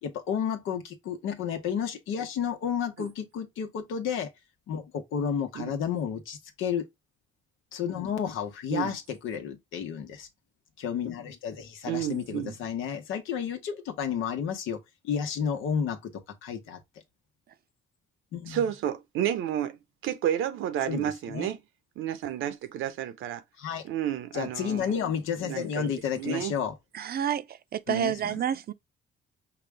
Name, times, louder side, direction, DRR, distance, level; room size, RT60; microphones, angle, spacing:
voice 1, 0.0-4.3 4.7-6.8 7.7-10.3 10.8-14.8 15.0-16.1 16.4-16.8 18.3-18.6 20.9-21.5 23.6-23.8 24.3-26.7 27.9-28.4, left 7 dB, 90° left, 1.1 m, -31 dB
voice 2, 11.8-12.5 18.4-21.6 22.0-23.4 23.8-24.9 25.4-26.5, right 10 dB, 85° right, 0.9 m, -31 dB
voice 3, 26.9-27.4 27.7-28.7, right 9 dB, 50° right, 0.6 m, -28 dB
5.9 x 2.4 x 3.3 m
cardioid pair, 90°, 20 cm